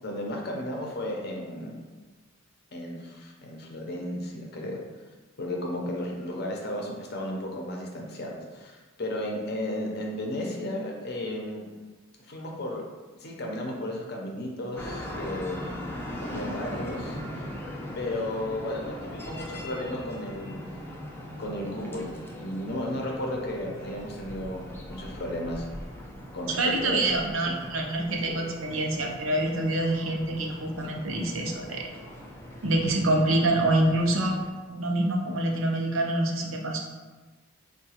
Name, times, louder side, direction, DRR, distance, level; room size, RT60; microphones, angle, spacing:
voice 1, 0.0-1.8 2.7-4.8 5.4-11.6 12.2-12.8 13.2-15.7 16.2-17.5 17.9-20.7 21.4-25.7 26.3-27.6 28.3-28.4, left 1 dB, 55° left, -1 dB, 0.6 m, -34 dB
sound 1, 14.8-34.5, equal, 10° left, 0.3 m, -40 dB
voice 2, 26.5-31.8 32.6-34.4 34.7-36.8, right 1 dB, 80° right, 1 dB, 0.6 m, -26 dB
4.6 x 2.2 x 2.8 m, 1.3 s
head